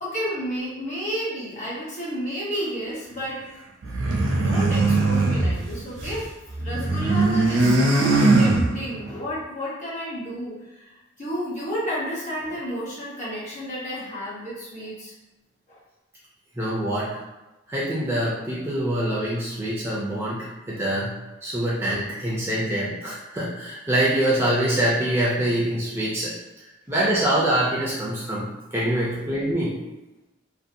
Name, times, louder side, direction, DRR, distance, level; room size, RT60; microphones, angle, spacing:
voice 1, 0.0-3.4 4.0-15.1 15.7-15.8 29.0-29.2, equal, 40° left, -8 dB, 1.1 m, -31 dB
sound 1, 3.8-6.2 6.5-9.1, right 2 dB, 65° right, 0.5 m, -21 dB
voice 2, 16.6-17.1 17.7-21.2 21.4-26.3 26.9-29.8, right 1 dB, 10° right, -6 dB, 0.3 m, -25 dB
2.6 x 2.2 x 2.5 m, 1.0 s
head